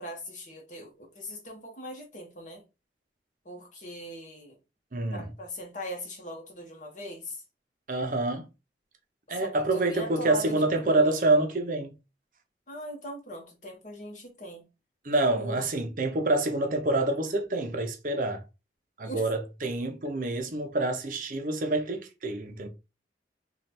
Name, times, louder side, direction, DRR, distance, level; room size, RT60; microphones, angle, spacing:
voice 1, 0.0-2.6 3.4-4.6 5.1-7.4 9.3-11.2 12.7-14.6 15.3-15.6 19.0-19.3, equal, 45° left, 1.2 m, -40 dB
voice 2, 4.9-5.3 7.9-8.5 9.3-11.9 15.0-18.4 19.0-22.7, right 2 dB, 45° right, 0.6 m, -27 dB
3.2 x 2.4 x 4.1 m
head